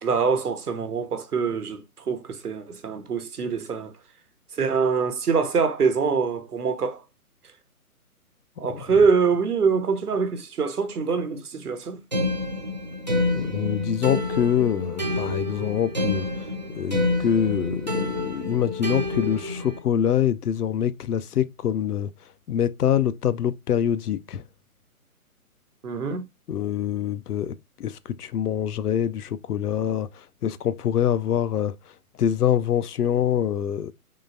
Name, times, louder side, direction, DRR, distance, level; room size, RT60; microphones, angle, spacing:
voice 1, 0.0-3.9 4.6-7.0 8.6-12.0 25.8-26.2, right 5 dB, 80° right, 1.0 m, -24 dB
sound 1, 12.1-19.8, left 2 dB, 35° right, 0.4 m, -28 dB
voice 2, 13.3-16.3 16.7-22.1 22.5-24.4 26.5-31.8 32.2-33.9, left 9 dB, 90° left, 0.5 m, -25 dB
3.7 x 3.2 x 2.5 m
figure-of-eight pair, 145°, 45 cm